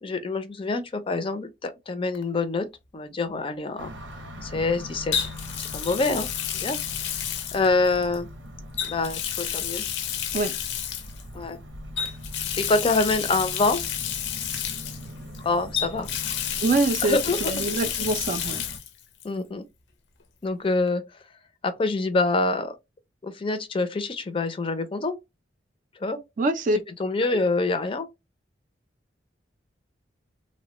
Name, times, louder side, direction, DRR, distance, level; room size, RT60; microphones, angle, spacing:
voice 1, 0.0-2.7 2.9-3.9 4.4-5.2 5.7-6.3 6.6-7.1 7.5-8.3 8.9-9.8 11.3-11.6 12.6-13.8 15.4-16.1 17.0-17.6 19.2-19.6 20.4-21.0 21.6-22.7 23.2-25.2 26.0-26.2 27.0-28.1, left 3 dB, 30° left, 0.4 m, -26 dB
Water tap faucet, 2.1-2.4 5.1-8.2 8.7-11.2 12.0-15.4 15.7-18.9 19.2-19.3 20.9-21.0, left 9 dB, 80° left, 0.5 m, -30 dB
sound 1, 3.8-18.8, equal, 85° right, 0.8 m, -41 dB
voice 2, 16.6-18.7 26.4-26.8 27.3-27.4, right 2 dB, 45° right, 0.4 m, -25 dB
3.0 x 2.1 x 2.9 m
head